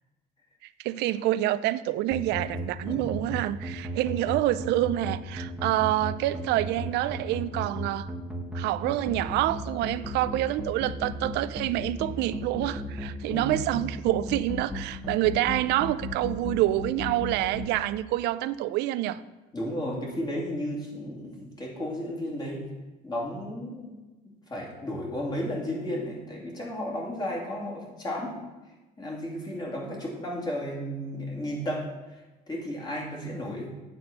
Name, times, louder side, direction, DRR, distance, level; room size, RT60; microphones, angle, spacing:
voice 1, 0.8-8.1 8.5-19.2, right 15 dB, 85° right, 0.4 m, -27 dB
sound 1, 2.1-17.7, left 1 dB, 5° right, 1.1 m, -34 dB
voice 2, 13.3-13.6 19.5-22.6 23.0-24.0 24.3-28.4 29.0-31.9 32.5-33.7, equal, 25° left, 2.6 m, -33 dB
8.2 x 4.3 x 6.6 m
cardioid pair, 110°, 17 cm